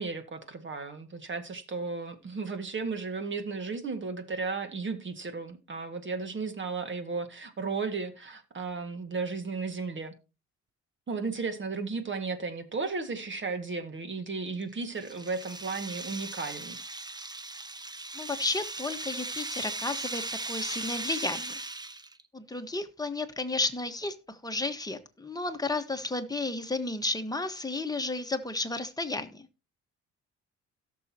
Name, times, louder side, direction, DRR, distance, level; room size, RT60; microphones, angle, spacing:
voice 1, 0.0-10.1 11.1-16.8, right 4 dB, 40° right, 2.0 m, -34 dB
sound 1, 14.5-22.2, right 2 dB, 15° right, 0.8 m, -38 dB
voice 2, 18.1-21.6 22.3-29.5, left 2 dB, 10° left, 1.4 m, -32 dB
17.5 x 6.7 x 2.9 m
cardioid pair, 90°, 30 cm